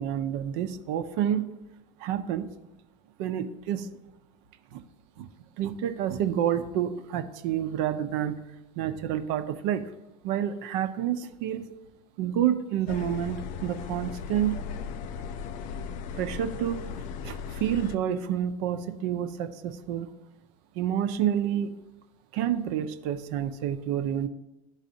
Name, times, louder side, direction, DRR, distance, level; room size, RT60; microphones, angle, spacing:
voice 1, 0.0-1.6 2.0-2.5 3.2-3.9 4.7-4.8 5.2-5.3 5.6-8.4 8.8-9.9 10.2-11.7 12.2-14.6 16.1-16.8 17.2-20.1 20.7-21.7 22.3-24.3, right 10 dB, 55° right, 8 dB, 0.6 m, -29 dB
sound 1, 12.9-18.0, left 6 dB, 45° left, 0.4 m, -37 dB
12.0 x 4.0 x 2.7 m, 0.97 s
hypercardioid pair, 75°, 18 cm